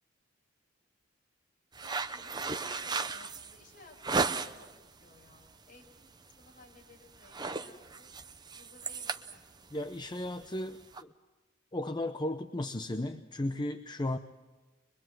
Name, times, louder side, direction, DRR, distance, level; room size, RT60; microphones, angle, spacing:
sound 1, 1.7-4.8 5.2-5.6 5.9-6.1 6.4-6.8 7.1-11.0, right 4 dB, 20° right, 0.8 m, -35 dB
voice 1, 1.8-4.7 5.0-8.1 8.5-9.8, left 2 dB, 45° left, 1 dB, 5.4 m, -59 dB
voice 2, 9.7-11.1 11.7-14.2, left 1 dB, 20° left, 7 dB, 0.7 m, -35 dB
23.5 x 23.0 x 7.7 m, 1.2 s
head